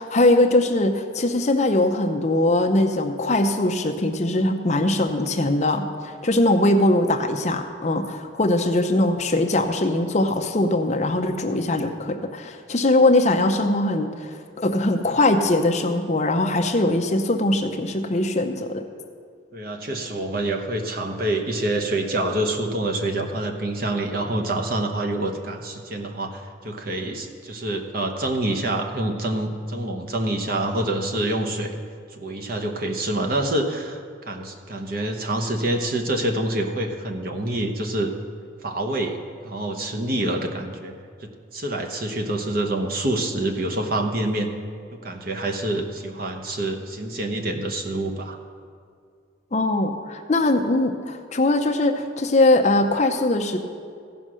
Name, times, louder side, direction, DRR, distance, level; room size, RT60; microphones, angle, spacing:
voice 1, 0.0-18.9 49.5-53.6, left 2 dB, 35° left, 5 dB, 0.6 m, -21 dB
voice 2, 19.5-31.8 32.1-38.1 38.6-39.2 39.4-41.0 41.2-44.5 44.9-48.4, right 1 dB, 45° right, 3 dB, 0.9 m, -26 dB
15.5 x 5.4 x 6.2 m, 2.2 s
head